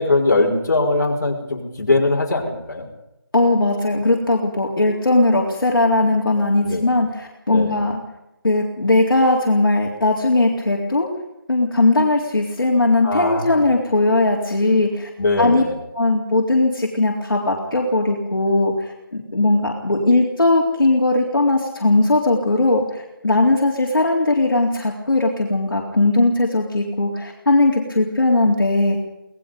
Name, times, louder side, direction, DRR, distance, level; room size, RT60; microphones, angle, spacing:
voice 1, 0.0-2.9 6.6-6.9 7.5-7.8 13.0-13.6 15.2-15.7, left 2 dB, 50° left, 0 dB, 5.4 m, -20 dB
voice 2, 3.3-8.0 8.4-11.1 11.5-15.1 15.4-15.6 15.9-29.0, left 2 dB, 70° left, -1 dB, 3.8 m, -18 dB
26.0 x 19.5 x 5.3 m, 0.92 s
figure-of-eight pair, 165°, 12 cm